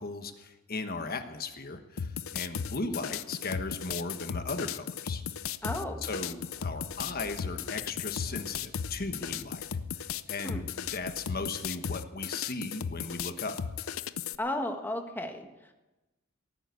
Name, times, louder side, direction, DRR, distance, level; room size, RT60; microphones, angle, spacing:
voice 1, 0.0-5.2 6.0-9.7 10.3-13.6, left 3 dB, 45° left, 7 dB, 1.3 m, -37 dB
sound 1, 2.0-14.3, left 7 dB, 85° left, 0.6 m, -36 dB
voice 2, 5.6-6.0 10.4-10.6 14.4-15.5, left 1 dB, 10° left, 5 dB, 1.5 m, -33 dB
sound 2, 5.6-9.7 10.2-10.3 10.9-11.3, equal, 20° right, 3.9 m, -50 dB
17.5 x 9.6 x 8.4 m, 1.1 s
head